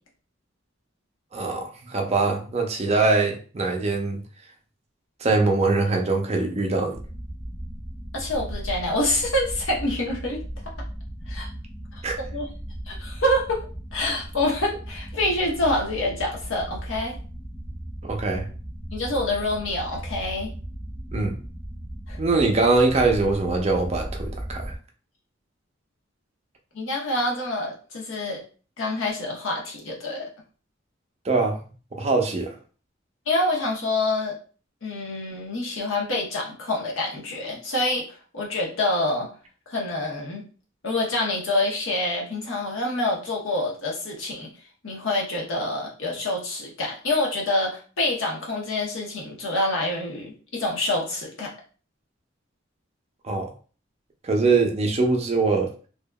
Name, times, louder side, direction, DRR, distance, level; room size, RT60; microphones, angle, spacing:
voice 1, 1.3-4.2 5.2-7.0 12.0-12.2 18.0-18.5 21.1-21.4 22.2-24.7 31.2-31.6 31.9-32.5 53.2-53.5 54.2-55.7, right 3 dB, 35° right, 2 dB, 0.5 m, -22 dB
sound 1, 6.9-24.8, right 1 dB, 55° left, 1.1 m, -36 dB
voice 2, 8.1-10.4 11.3-11.5 12.2-12.5 12.9-13.7 13.9-17.2 18.9-20.5 22.1-22.2 26.7-28.4 28.8-30.3 33.3-34.4 34.8-38.0 38.3-39.3 39.7-40.4 40.8-44.5 44.8-51.5, left 1 dB, 90° left, -1 dB, 0.9 m, -26 dB
2.7 x 2.3 x 2.2 m, 0.38 s
head